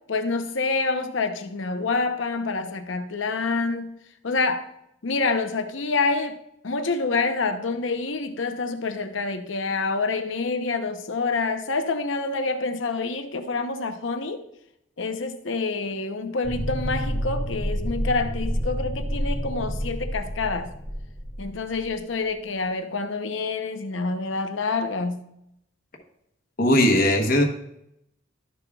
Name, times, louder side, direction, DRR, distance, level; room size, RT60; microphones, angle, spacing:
voice 1, 0.1-3.9 4.2-4.7 5.0-14.5 15.0-20.7 21.4-25.2, left 3 dB, 80° left, 0.8 m, -27 dB
sound 1, 16.4-21.9, equal, 5° left, 2.1 m, -29 dB
voice 2, 26.6-27.4, left 1 dB, 45° left, 1.1 m, -18 dB
12.5 x 6.9 x 2.4 m
head